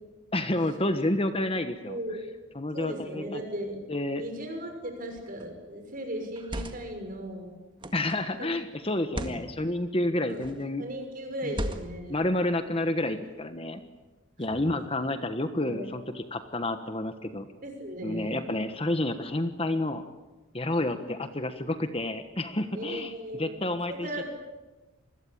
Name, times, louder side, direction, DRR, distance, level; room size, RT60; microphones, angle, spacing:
voice 1, 0.3-2.0 2.5-3.4 3.9-4.2 7.9-10.8 11.4-11.5 12.1-13.8 14.4-17.5 18.0-20.0 20.5-24.2, left 1 dB, 25° left, 9 dB, 1.3 m, -29 dB
voice 2, 1.9-2.2 2.7-3.8 4.1-7.6 8.4-8.5 9.1-9.4 10.2-10.5 10.8-12.2 14.4-14.6 15.6-15.9 17.6-18.5 22.7-23.6 23.9-24.2, equal, 40° right, 5 dB, 6.2 m, -37 dB
sound 1, 5.1-5.4 6.3-7.0 7.8-8.2 9.0-9.4 10.3-10.7 11.5-12.1, right 1 dB, 25° right, 1.9 m, -36 dB
27.5 x 21.0 x 8.8 m, 1.1 s
head